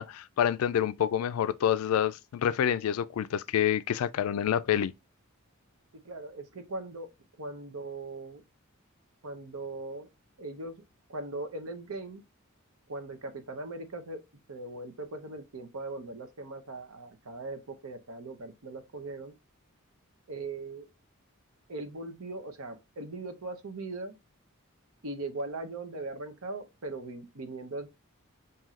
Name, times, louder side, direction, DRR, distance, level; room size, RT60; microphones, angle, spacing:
voice 1, 0.0-4.9, left 9 dB, 80° left, 0.3 m, -27 dB
voice 2, 6.0-7.1 7.4-8.4 9.2-10.1 10.4-10.8 11.1-12.2 12.9-14.2 14.5-19.3 20.3-20.9 21.7-24.1 25.0-27.9, right 2 dB, 80° right, 0.8 m, -39 dB
5.6 x 2.7 x 2.4 m
head